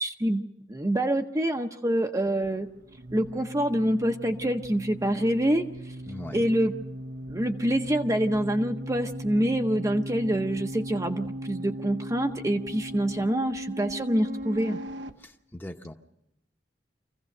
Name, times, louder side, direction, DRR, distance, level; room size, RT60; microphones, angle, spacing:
voice 1, 0.0-2.7 3.1-5.7 6.3-6.7 7.3-14.8, right 1 dB, 20° right, 4 dB, 0.7 m, -26 dB
sound 1, 2.3-15.1, equal, 85° right, 0.9 m, -38 dB
voice 2, 6.1-6.5 15.2-15.9, left 1 dB, 10° left, 5 dB, 1.0 m, -40 dB
25.0 x 15.5 x 6.6 m, 0.86 s
head